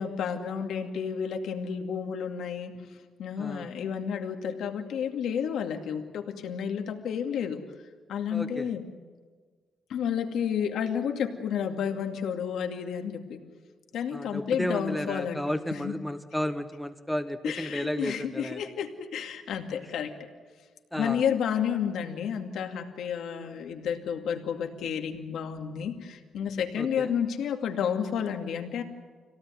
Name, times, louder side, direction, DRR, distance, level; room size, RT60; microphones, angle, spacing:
voice 1, 0.0-2.8 3.2-7.6 8.1-8.8 9.9-13.4 13.9-16.0 17.4-20.1 21.0-28.8, left 8 dB, 75° left, 4 dB, 2.4 m, -31 dB
voice 2, 3.4-3.7 8.3-8.7 14.1-18.7 20.9-21.2 26.8-27.1, equal, 5° left, 8 dB, 0.9 m, -33 dB
26.0 x 17.5 x 9.3 m, 1.5 s
cardioid pair, 150°, 0 cm